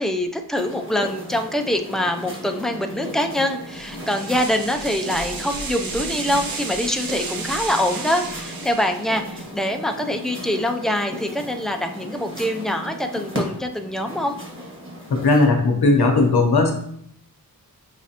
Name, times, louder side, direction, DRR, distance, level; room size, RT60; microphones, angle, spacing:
voice 1, 0.0-14.4, left 1 dB, ahead, 4 dB, 0.4 m, -24 dB
sound 1, 0.5-15.5, equal, 35° right, 1.5 m, -36 dB
sound 2, 3.7-9.3, right 4 dB, 70° right, 0.7 m, -33 dB
voice 2, 15.1-16.7, left 3 dB, 90° left, 2 dB, 0.9 m, -17 dB
6.0 x 3.1 x 2.9 m, 0.69 s
wide cardioid pair, 95°, 37 cm